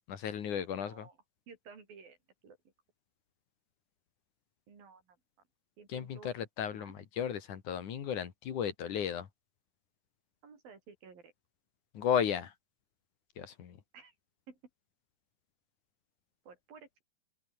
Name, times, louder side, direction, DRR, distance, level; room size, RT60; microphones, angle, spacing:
voice 1, 0.1-1.0 5.9-9.3 11.9-12.5 13.4-13.8, left 8 dB, 65° left, 3.5 m, -34 dB
voice 2, 0.7-1.2 1.5-2.2 2.4-2.7 4.7-5.2 5.8-6.3 6.7-7.0 10.4-11.3 13.9-14.1 14.5-14.6 16.4-17.0, right 5 dB, 90° right, 6.8 m, -54 dB
open air
omnidirectional pair, 4.0 m